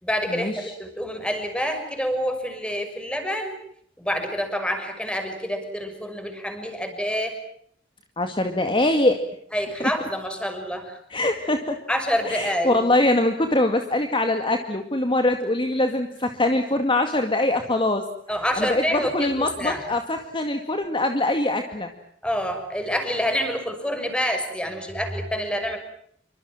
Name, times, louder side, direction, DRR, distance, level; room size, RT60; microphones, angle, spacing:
voice 1, 0.0-3.6 4.0-7.4 9.5-11.0 11.9-12.8 18.3-19.8 22.2-25.8, equal, 5° left, 7 dB, 6.2 m, -27 dB
voice 2, 8.2-9.2 9.8-9.9 11.1-11.8 12.2-18.0 18.6-21.9, left 1 dB, 30° left, 6 dB, 2.2 m, -23 dB
28.0 x 25.0 x 7.4 m, 0.67 s
head